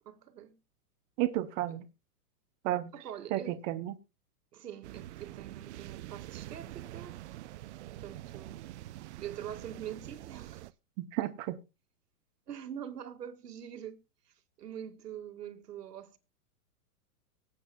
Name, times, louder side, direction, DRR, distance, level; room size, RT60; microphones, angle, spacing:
voice 1, 0.1-0.6 2.9-3.6 4.5-7.2 8.0-8.7 9.2-10.7 12.5-14.0 14.6-16.2, right 9 dB, 85° right, 2.0 m, -44 dB
voice 2, 1.2-1.9 2.6-2.9 3.3-3.9 11.0-11.6, right 14 dB, 35° right, 1.0 m, -32 dB
sound 1, 4.8-10.7, right 15 dB, 50° right, 0.6 m, -45 dB
23.5 x 8.3 x 2.3 m
hypercardioid pair, 140°, 47 cm